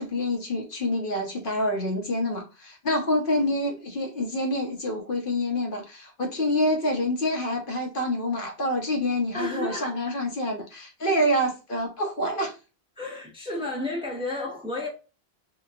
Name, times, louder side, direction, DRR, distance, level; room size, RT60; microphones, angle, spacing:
voice 1, 0.0-12.6, left 1 dB, 60° left, 0.9 m, -27 dB
voice 2, 9.3-10.2 13.0-14.9, left 2 dB, 5° right, 0.6 m, -32 dB
2.9 x 2.2 x 2.3 m
omnidirectional pair, 1.1 m